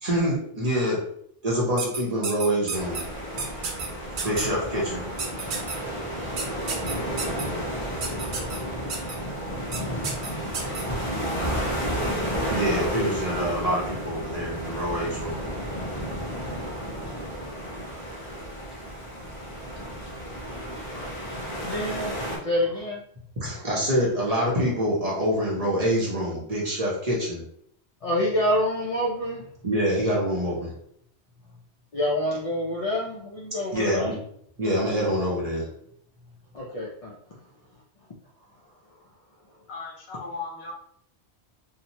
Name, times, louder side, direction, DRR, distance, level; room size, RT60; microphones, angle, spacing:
voice 1, 0.0-1.0 1.4-3.0 4.2-5.0 12.5-15.4 23.4-27.4 29.6-30.7 33.7-34.2 34.6-35.7, equal, 40° right, -4 dB, 0.7 m, -25 dB
sound 1, 1.8-3.0 3.4-3.9 4.2-4.4 5.2-5.8 6.4-7.4 8.0-8.6 8.9-9.1 9.7-9.8 10.0-10.8, right 4 dB, 75° right, 0.9 m, -31 dB
sound 2, 2.7-22.4, equal, 35° left, 0.7 m, -32 dB
voice 2, 21.6-22.1 22.4-23.0 28.0-29.4 31.9-34.1 36.5-37.2, left 1 dB, 60° left, -4 dB, 0.4 m, -27 dB
voice 3, 39.7-40.7, left 4 dB, 75° left, 0 dB, 0.9 m, -36 dB
2.7 x 2.1 x 2.7 m, 0.68 s
omnidirectional pair, 1.1 m